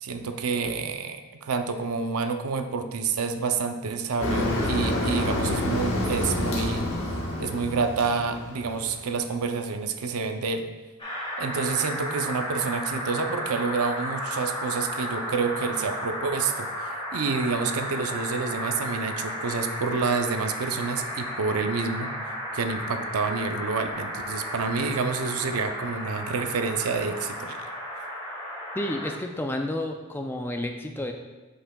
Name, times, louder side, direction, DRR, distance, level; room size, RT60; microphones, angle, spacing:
voice 1, 0.0-6.8 7.4-10.7 11.4-22.1 22.5-27.6, right 4 dB, 90° right, 7 dB, 0.5 m, -28 dB
Motor vehicle (road), 4.2-9.1, left 1 dB, 60° left, 1.2 m, -28 dB
sound 1, 11.0-29.1, equal, 25° left, 1.7 m, -34 dB
voice 2, 28.7-31.1, left 1 dB, 10° left, 4 dB, 0.4 m, -30 dB
8.4 x 5.7 x 2.3 m, 1.2 s
head